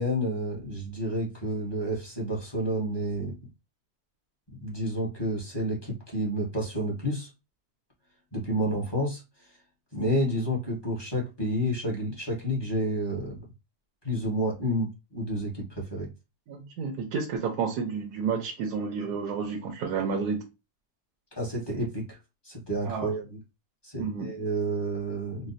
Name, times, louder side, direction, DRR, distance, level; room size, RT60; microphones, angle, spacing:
voice 1, 0.0-3.3 4.6-7.3 8.3-9.2 9.9-13.4 14.0-16.1 21.3-22.2 22.4-23.4 23.8-25.5, equal, 20° left, 1.0 m, -30 dB
voice 2, 16.5-20.4 22.8-23.1 24.0-24.3, right 5 dB, 90° right, 1.2 m, -30 dB
4.1 x 2.2 x 2.6 m
omnidirectional pair, 1.7 m